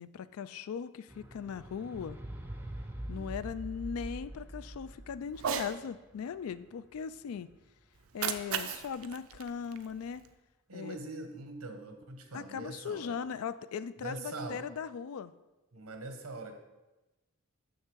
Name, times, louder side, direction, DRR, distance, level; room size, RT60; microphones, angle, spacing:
voice 1, 0.0-2.2 3.1-7.5 8.1-10.2 10.7-11.0 12.3-15.3, left 7 dB, 80° left, 15 dB, 0.3 m, -39 dB
sound 1, 1.1-7.6 8.4-8.5, right 1 dB, 10° right, 0.5 m, -44 dB
voice 2, 3.1-3.4 10.7-13.2 14.0-14.6 15.7-16.6, right 2 dB, 85° right, 6 dB, 1.0 m, -43 dB
Cat, 5.3-5.8 7.9-10.3, right 7 dB, 70° right, 0.5 m, -37 dB
6.7 x 6.5 x 4.6 m, 1.1 s
head